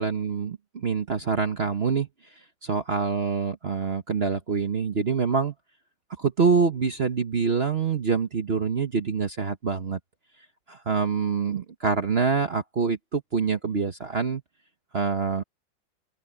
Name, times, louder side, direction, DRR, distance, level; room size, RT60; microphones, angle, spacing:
voice 1, 0.0-2.1 2.6-5.5 6.2-10.0 10.7-14.4 14.9-15.4, right 5 dB, 40° right, 1.1 m, -25 dB
open air
omnidirectional pair, 2.1 m